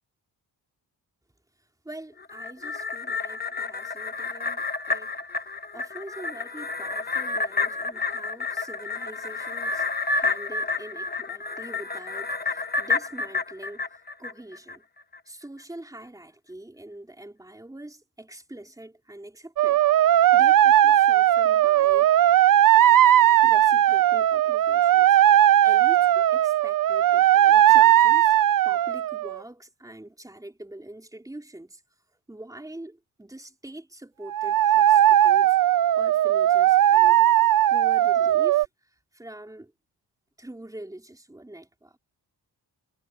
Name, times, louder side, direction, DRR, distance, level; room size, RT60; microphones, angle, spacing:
voice 1, 1.6-5.2 5.7-14.8 15.3-19.9 20.3-22.1 23.2-25.2 25.6-28.4 28.6-31.8 32.3-35.7 36.0-39.7 40.4-42.0, right 1 dB, 10° right, 3.6 m, -44 dB
sound 1, 2.2-14.8 15.1-15.2, left 4 dB, 25° left, 1.0 m, -30 dB
sound 2, 19.6-29.4 34.3-38.7, right 12 dB, 50° right, 0.4 m, -18 dB
wide cardioid pair, 175°, 42 cm